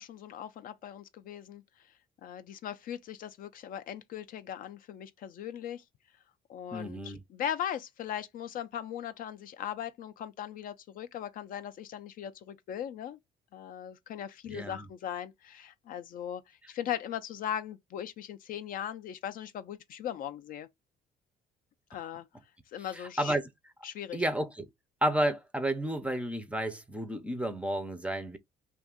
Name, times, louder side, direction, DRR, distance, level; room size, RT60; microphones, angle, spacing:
voice 1, 0.0-1.6 2.2-5.8 6.5-13.2 13.5-20.7 21.9-22.3 22.7-23.3 23.8-24.2, left 10 dB, 55° left, 0.4 m, -39 dB
voice 2, 6.7-7.2 14.5-14.9 22.9-23.5 24.1-24.7 25.0-28.4, right 1 dB, 5° right, 0.4 m, -31 dB
2.6 x 2.3 x 3.6 m
cardioid pair, 110°, 17 cm